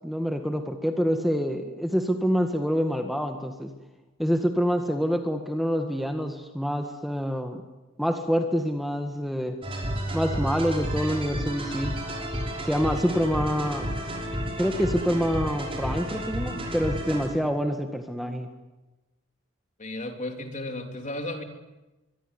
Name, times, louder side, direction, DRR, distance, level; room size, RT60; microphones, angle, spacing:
voice 1, 0.0-3.7 4.2-7.6 8.0-9.6 10.1-11.9 12.6-13.9 14.6-18.5, equal, ahead, 5 dB, 1.7 m, -26 dB
sound 1, 9.6-17.5, equal, 25° right, 5.9 m, -32 dB
voice 2, 19.8-21.4, left 1 dB, 35° left, 5 dB, 3.3 m, -34 dB
24.0 x 23.0 x 9.9 m, 1.1 s
head